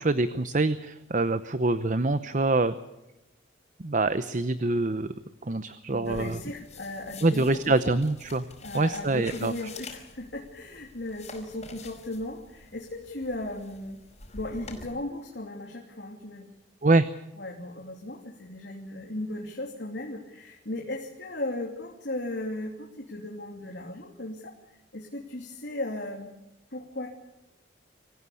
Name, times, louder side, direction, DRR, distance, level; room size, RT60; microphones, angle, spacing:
voice 1, 0.0-2.8 3.8-5.1 5.4-6.4 7.2-8.4 8.7-9.5 16.8-17.1, right 2 dB, 45° right, 13 dB, 0.8 m, -25 dB
voice 2, 5.9-7.9 8.6-14.0 14.3-16.5 17.4-24.5 24.9-26.3 26.7-27.1, left 1 dB, 70° left, 0 dB, 2.9 m, -36 dB
sound 1, 6.0-14.8, left 3 dB, 35° left, 5.1 m, -47 dB
25.5 x 15.5 x 8.5 m, 0.93 s
head